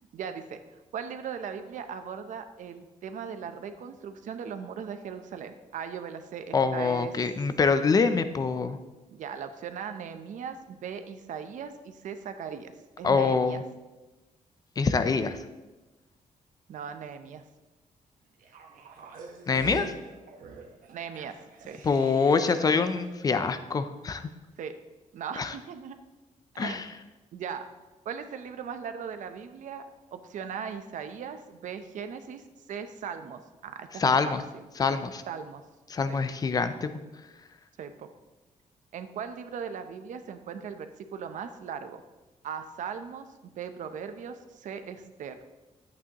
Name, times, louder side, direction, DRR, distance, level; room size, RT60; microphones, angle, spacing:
voice 1, 0.1-7.1 9.1-12.7 13.0-13.6 16.7-17.4 19.6-19.9 20.9-21.4 21.7-21.8 22.4-22.7 24.6-24.7 25.1-26.0 26.5-26.8 27.3-27.7 28.0-29.8 30.1-32.4 32.7-34.6 35.3-35.6 36.1-36.2 37.8-38.1 38.9-42.0 42.4-45.4, right 7 dB, 70° right, 9 dB, 0.7 m, -38 dB
voice 2, 6.5-8.8 13.0-13.6 14.8-15.4 19.5-19.9 21.8-24.3 25.4-25.5 26.6-26.9 34.0-34.4 34.8-35.2 35.9-36.9, left 4 dB, 30° left, 10 dB, 0.4 m, -25 dB
sound 1, 18.4-22.8 23.1-23.2, right 5 dB, 85° right, 1.2 m, -45 dB
11.0 x 8.4 x 3.0 m, 1.1 s
wide cardioid pair, 175°, 14 cm